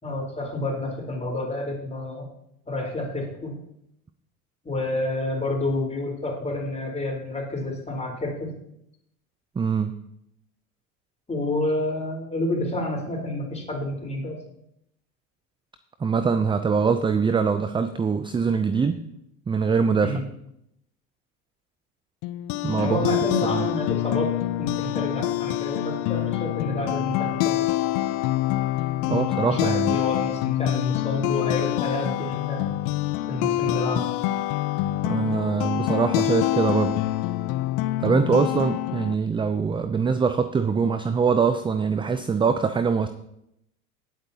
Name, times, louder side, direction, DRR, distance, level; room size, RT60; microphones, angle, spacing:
voice 1, 0.0-2.2 2.7-3.5 4.6-8.5 11.3-14.4 20.0-20.2 22.8-24.3 24.6-27.6 29.0-32.7 33.3-34.1, left 1 dB, 15° left, -2 dB, 4.2 m, -29 dB
voice 2, 9.6-10.0 16.0-19.0 19.5-20.2 22.6-23.2 23.5-23.7 29.1-30.0 35.0-37.0 38.0-43.1, right 5 dB, 10° right, 11 dB, 0.5 m, -23 dB
sound 1, 22.2-39.1, left 15 dB, 50° left, 0.6 m, -26 dB
18.5 x 8.0 x 2.9 m, 0.79 s
hypercardioid pair, 80°, 43 cm